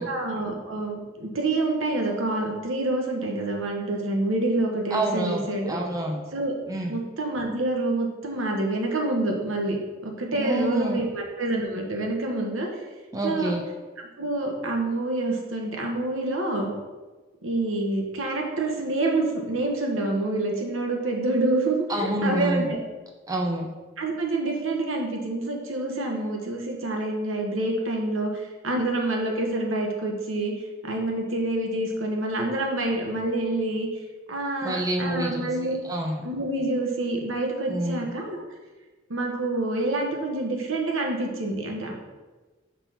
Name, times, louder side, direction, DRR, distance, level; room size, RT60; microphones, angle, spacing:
voice 1, 0.0-5.8 6.3-6.5 6.9-9.8 10.0-12.7 13.2-13.5 14.2-16.7 17.4-22.8 24.0-30.5 30.8-33.9 34.3-35.7 36.2-38.4 39.1-42.1, right 2 dB, 85° right, 1 dB, 1.2 m, -27 dB
voice 2, 4.9-6.2 6.7-7.0 10.3-11.0 13.1-13.6 21.9-22.7 23.3-23.7 34.6-35.5 35.8-36.2 37.7-38.1, right 1 dB, 15° right, 0 dB, 0.6 m, -27 dB
5.4 x 4.1 x 5.9 m, 1.2 s
head